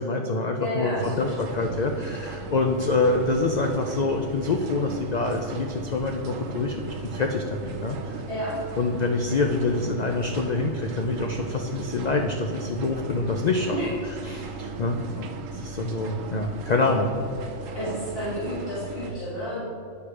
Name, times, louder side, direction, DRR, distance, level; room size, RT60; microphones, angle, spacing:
voice 1, 0.0-8.1 8.8-13.8 14.2-15.3 15.5-17.1, left 3 dB, 85° left, 3 dB, 0.3 m, -26 dB
voice 2, 0.6-1.3 8.3-8.5 13.7-14.3 17.7-19.6, equal, 45° left, -11 dB, 1.9 m, -31 dB
sound 1, 0.9-19.1, right 4 dB, 75° right, 1.0 m, -37 dB
9.2 x 4.7 x 4.8 m, 2.4 s
omnidirectional pair, 1.4 m